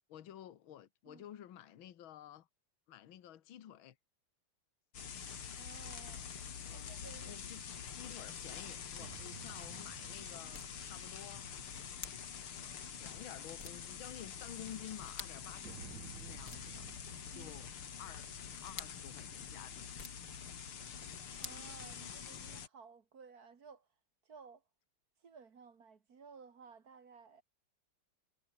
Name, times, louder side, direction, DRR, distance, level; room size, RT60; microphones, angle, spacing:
voice 1, 0.1-2.5 2.9-4.0 6.6-6.9 7.3-7.6 7.9-11.5 12.9-16.9 17.3-18.3 18.6-19.9, left 11 dB, 70° left, 2.0 m, -52 dB
sound 1, 4.9-22.7, left 7 dB, 85° left, 3.0 m, -46 dB
voice 2, 5.6-6.3 6.7-7.3 17.3-17.5 21.4-23.9 24.3-24.6 25.2-27.4, right 5 dB, 45° right, 2.1 m, -56 dB
sound 2, 9.0-12.7 15.6-19.4, right 12 dB, 65° right, 1.4 m, -56 dB
sound 3, 9.7-22.5, left 4 dB, 40° left, 3.3 m, -55 dB
omnidirectional pair, 2.3 m